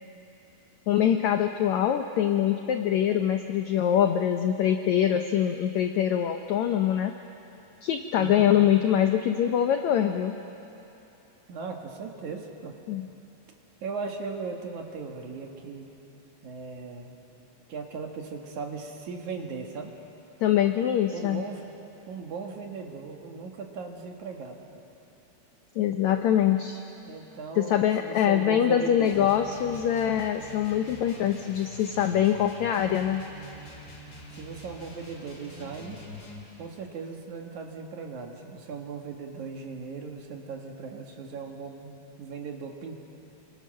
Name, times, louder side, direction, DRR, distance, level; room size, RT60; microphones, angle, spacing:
voice 1, 0.9-7.1 7.8-10.3 12.9-13.1 20.4-21.4 25.8-26.8 27.6-33.2, left 10 dB, 80° left, 6 dB, 1.6 m, -24 dB
voice 2, 8.2-8.5 11.5-12.8 13.8-15.9 16.4-17.2 17.7-19.9 21.1-21.6 22.1-24.8 27.0-29.3 34.3-36.0 36.6-43.0, right 5 dB, 60° right, 2 dB, 2.8 m, -38 dB
sound 1, 29.0-36.5, equal, 25° left, 4.1 m, -45 dB
28.0 x 23.5 x 6.5 m, 2.9 s
omnidirectional pair, 4.3 m